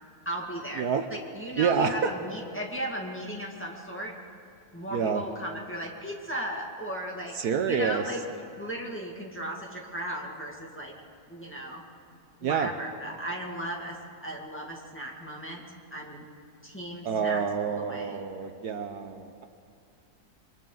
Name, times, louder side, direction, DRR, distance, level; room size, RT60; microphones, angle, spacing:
voice 1, 0.3-4.2 4.7-7.4 7.7-8.2 8.6-10.9 11.3-11.8 12.4-15.6 15.9-16.3 16.6-18.2, right 1 dB, 5° left, -2 dB, 2.0 m, -36 dB
voice 2, 0.8-1.1 1.6-2.1 4.9-5.2 7.3-8.0 12.4-12.7 17.0-19.4, right 6 dB, 70° right, 7 dB, 1.3 m, -28 dB
28.0 x 23.5 x 3.9 m, 2.5 s
omnidirectional pair, 1.8 m